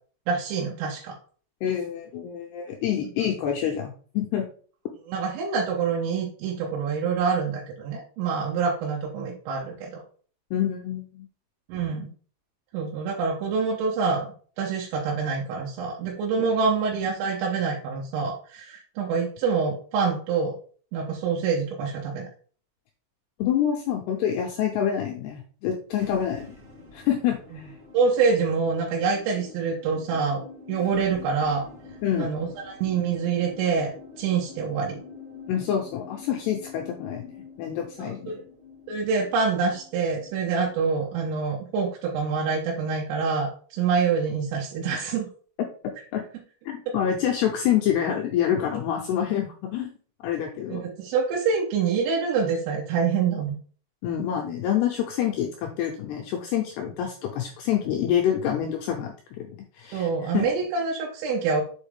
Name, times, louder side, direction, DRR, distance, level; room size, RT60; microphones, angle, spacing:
voice 1, 0.3-1.2 3.0-3.1 5.1-10.0 11.7-12.1 12.7-20.5 20.9-22.3 27.9-30.4 30.7-31.6 32.2-33.9 34.2-35.0 38.0-38.4 38.9-45.3 50.7-53.6 59.9-61.6, right 5 dB, 85° right, -2 dB, 3.6 m, -26 dB
voice 2, 1.6-4.5 10.5-11.3 16.4-16.5 23.4-26.5 26.9-27.7 32.0-32.3 35.5-38.4 46.1-46.2 46.7-49.9 50.2-50.9 54.0-60.1 60.3-60.5, left 9 dB, 90° left, 1 dB, 2.4 m, -27 dB
sound 1, 25.8-41.3, left 4 dB, 50° right, 2.5 m, -47 dB
7.1 x 5.0 x 3.5 m, 0.43 s
omnidirectional pair, 5.7 m